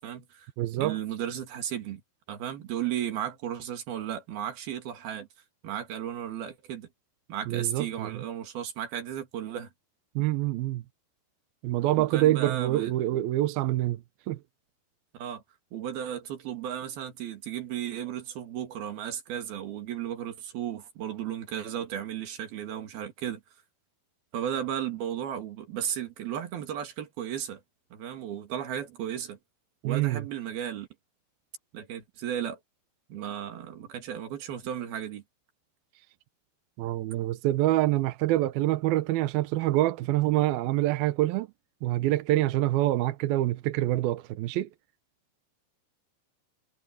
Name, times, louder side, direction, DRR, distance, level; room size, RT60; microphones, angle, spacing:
voice 1, 0.0-0.5 0.8-2.0 2.3-5.3 5.6-6.9 7.3-9.7 12.0-12.9 15.1-15.4 15.7-23.4 24.3-27.6 27.9-29.4 29.8-30.9 31.7-32.6 33.1-35.2, right 10 dB, 60° right, 3.9 m, -34 dB
voice 2, 0.6-1.0 7.5-8.2 10.2-10.8 11.6-14.4 29.8-30.2 36.8-41.5 41.8-44.7, right 15 dB, 75° right, 2.2 m, -26 dB
omnidirectional pair, 5.3 m